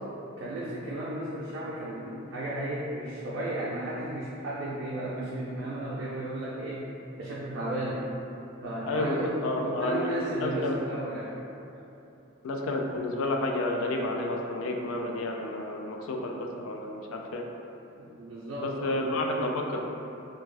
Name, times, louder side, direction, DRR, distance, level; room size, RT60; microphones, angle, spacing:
voice 1, 0.4-6.8 7.2-8.1 8.6-9.4 9.6-11.4 18.0-19.0, right 1 dB, 70° right, -7 dB, 0.4 m, -34 dB
voice 2, 8.9-10.8 12.4-17.4 18.6-19.8, left 1 dB, 85° left, 1 dB, 0.3 m, -30 dB
2.5 x 2.2 x 3.1 m, 2.8 s
head